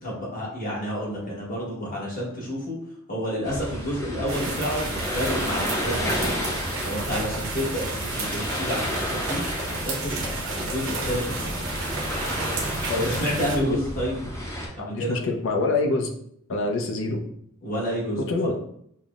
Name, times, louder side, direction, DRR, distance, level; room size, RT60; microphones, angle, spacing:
voice 1, 0.0-2.8 3.1-6.3 6.8-11.6 13.0-14.2 14.8-15.2 17.6-18.3, equal, 40° left, -4 dB, 1.1 m, -30 dB
sound 1, 3.4-14.7, equal, 15° left, 0.6 m, -31 dB
sound 2, 4.3-13.6, right 2 dB, 70° right, 0.7 m, -32 dB
voice 2, 12.8-13.2 14.8-16.1 16.5-17.2 18.2-18.6, left 3 dB, 65° left, 3 dB, 0.5 m, -25 dB
5.5 x 2.0 x 2.3 m, 0.71 s
head